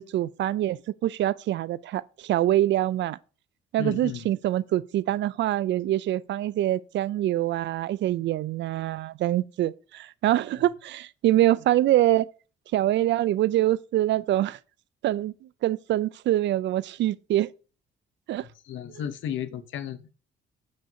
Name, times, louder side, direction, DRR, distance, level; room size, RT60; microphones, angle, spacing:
voice 1, 0.0-3.2 3.7-12.3 12.7-14.6 15.0-15.3 15.6-17.5 18.3-18.5, right 13 dB, 65° right, 0.4 m, -25 dB
voice 2, 3.8-4.3 18.6-20.0, left 9 dB, 75° left, 0.8 m, -33 dB
8.9 x 5.3 x 2.7 m
cardioid pair, 90°, 20 cm